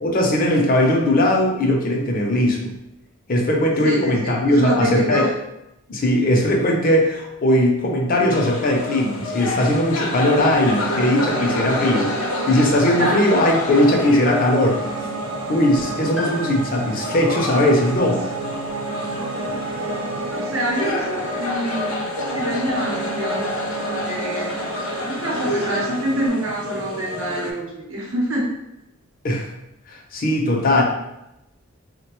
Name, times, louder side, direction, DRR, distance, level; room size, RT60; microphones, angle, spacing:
voice 1, 0.0-2.7 3.3-5.3 5.9-12.1 12.5-15.1 15.5-18.2 29.2-29.5 29.9-30.8, left 1 dB, 40° left, 0 dB, 0.5 m, -19 dB
voice 2, 3.8-5.3 13.0-13.3 20.3-23.4 23.8-24.5 25.0-28.5, equal, 70° right, -2 dB, 0.8 m, -26 dB
sound 1, 8.3-27.5, left 2 dB, 85° left, 0.6 m, -29 dB
Piano, 10.2-26.3, right 3 dB, 90° right, 0.4 m, -30 dB
Piano 2, 16.2-20.0 20.3-20.4 21.5-21.6, equal, 5° right, 0.6 m, -39 dB
3.7 x 2.2 x 3.0 m, 0.87 s
head